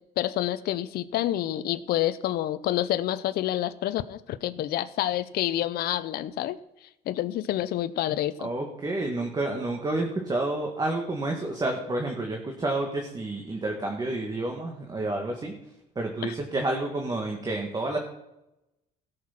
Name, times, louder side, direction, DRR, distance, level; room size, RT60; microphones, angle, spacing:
voice 1, 0.2-6.6 7.1-8.5 16.2-16.3, left 13 dB, 65° left, 13 dB, 0.6 m, -28 dB
voice 2, 8.4-15.5 16.0-18.0, right 2 dB, 25° right, 2 dB, 1.9 m, -29 dB
16.5 x 6.5 x 5.9 m, 0.88 s
cardioid pair, 110°, 17 cm